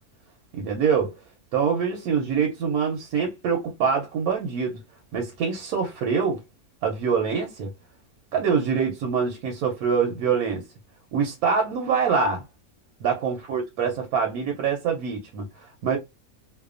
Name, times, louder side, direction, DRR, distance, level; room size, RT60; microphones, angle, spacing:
voice 1, 0.5-1.2 1.5-4.8 5.1-6.4 6.8-7.7 8.3-10.7 11.1-12.5 13.0-16.0, right 6 dB, 90° right, 1.1 m, -25 dB
2.7 x 2.1 x 2.4 m
omnidirectional pair, 1.5 m